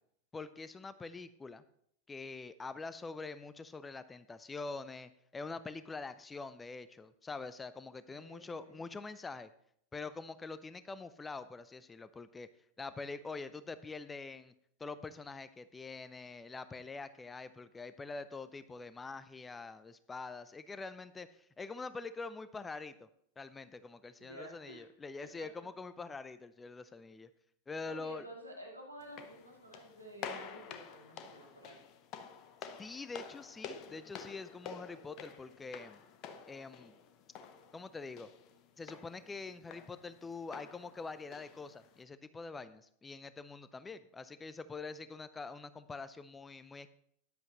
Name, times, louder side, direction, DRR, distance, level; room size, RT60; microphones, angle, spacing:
voice 1, 0.3-1.6 2.1-9.5 9.9-12.5 12.8-14.5 14.8-21.3 21.6-23.1 23.4-27.3 27.7-28.3 32.8-36.0 36.5-36.9 37.7-38.3 38.8-46.9, left 4 dB, 15° left, 14 dB, 0.5 m, -45 dB
voice 2, 8.1-8.8 24.2-24.9 25.2-25.5 27.9-31.8, right 1 dB, 90° right, -2 dB, 2.6 m, -51 dB
sound 1, 29.0-42.0, left 7 dB, 35° left, 0.9 m, -50 dB
13.0 x 9.9 x 3.0 m, 0.68 s
figure-of-eight pair, 90°, 0 cm